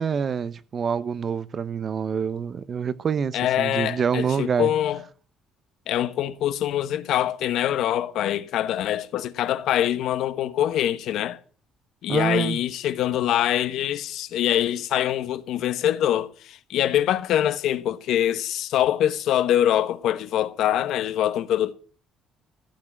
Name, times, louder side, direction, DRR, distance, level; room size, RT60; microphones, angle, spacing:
voice 1, 0.0-4.7 12.1-12.6, right 6 dB, 30° right, 0.7 m, -26 dB
voice 2, 3.3-5.0 5.9-11.4 12.0-21.7, left 11 dB, 60° left, 1.1 m, -24 dB
15.0 x 7.4 x 8.6 m
cardioid pair, 165°, 0 cm